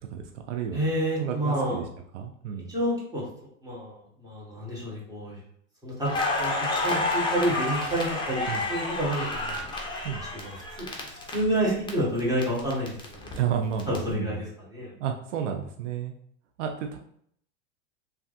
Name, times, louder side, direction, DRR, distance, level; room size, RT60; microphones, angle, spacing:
voice 1, 0.1-0.8 1.2-1.8 2.1-2.7 8.5-8.6 10.0-10.2 13.3-14.4 15.0-16.1 16.6-17.0, right 8 dB, 80° right, 4 dB, 0.5 m, -31 dB
voice 2, 0.7-1.8 2.7-3.2 3.6-5.4 5.8-9.9 10.3-10.9 11.3-13.3 13.8-14.9, right 1 dB, 10° right, -6 dB, 1.4 m, -29 dB
Crackle, 6.0-11.9 12.2-14.0, left 2 dB, 15° left, 0.6 m, -30 dB
3.2 x 2.3 x 2.6 m, 0.67 s
hypercardioid pair, 105°, 36 cm